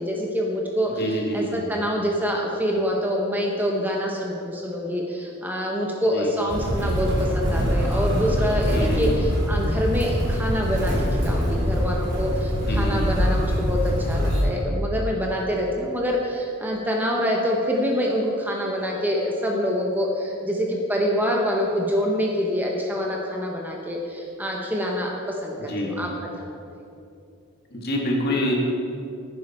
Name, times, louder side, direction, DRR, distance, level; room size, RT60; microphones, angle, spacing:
voice 1, 0.0-26.1 26.4-26.6, equal, 10° right, -1 dB, 0.9 m, -26 dB
voice 2, 1.0-1.6 6.1-6.3 8.7-9.3 12.7-13.1 25.6-26.0 27.7-28.5, equal, 45° left, -1 dB, 1.9 m, -27 dB
Motor vehicle (road), 6.5-14.4, equal, 55° right, 2.6 m, -23 dB
11.0 x 9.6 x 4.3 m, 2.6 s
head